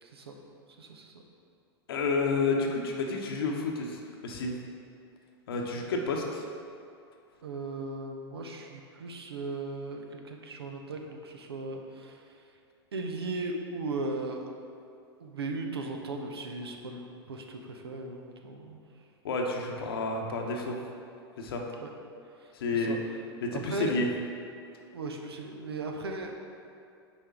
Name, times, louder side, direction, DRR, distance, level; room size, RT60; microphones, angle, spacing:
voice 1, 0.0-0.3 0.8-1.1 7.4-12.3 12.9-14.5 15.2-18.8 21.8-21.9 22.4-23.0 23.5-23.9 24.9-26.3, right 2 dB, 70° right, 3 dB, 0.9 m, -37 dB
voice 2, 1.9-4.5 5.5-6.4 19.2-20.8 21.4-21.6 22.5-23.0 23.4-24.1, left 3 dB, 65° left, 1 dB, 0.9 m, -30 dB
8.4 x 5.3 x 3.7 m, 2.4 s
figure-of-eight pair, 90°, 13 cm